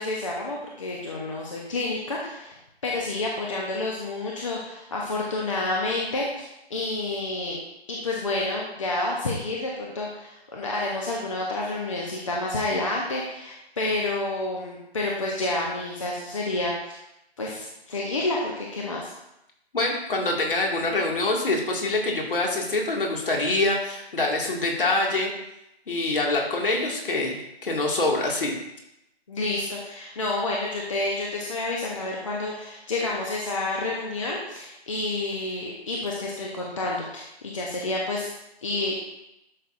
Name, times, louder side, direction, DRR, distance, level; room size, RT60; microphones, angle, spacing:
voice 1, 0.0-2.5 2.8-7.6 7.9-17.0 17.4-19.1 29.3-38.3 38.6-38.9, left 2 dB, 30° left, -2 dB, 0.8 m, -29 dB
voice 2, 19.7-25.3 25.9-28.5, left 2 dB, 55° left, 0 dB, 2.1 m, -25 dB
11.0 x 6.0 x 2.6 m, 0.87 s
figure-of-eight pair, 160°, 32 cm